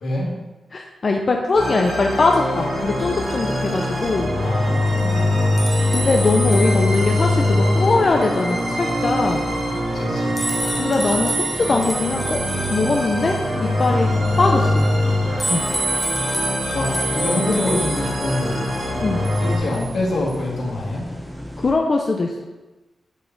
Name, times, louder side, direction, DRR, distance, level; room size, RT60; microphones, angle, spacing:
voice 1, 0.0-0.3 4.4-5.3 9.9-10.4 14.0-14.1 16.7-18.6 19.4-21.1, left 1 dB, 85° left, -5 dB, 1.9 m, -25 dB
voice 2, 0.7-4.3 5.9-9.5 10.8-12.4 12.7-14.1 14.4-14.9 15.4-15.7 19.0-19.2 21.6-22.4, left 3 dB, 45° left, 1 dB, 0.5 m, -21 dB
sound 1, 1.5-19.6, left 1 dB, 60° right, 2.3 m, -23 dB
sound 2, 2.4-21.7, right 1 dB, 5° right, 1.0 m, -30 dB
8.2 x 3.6 x 3.8 m, 1.1 s
cardioid pair, 85°, 0 cm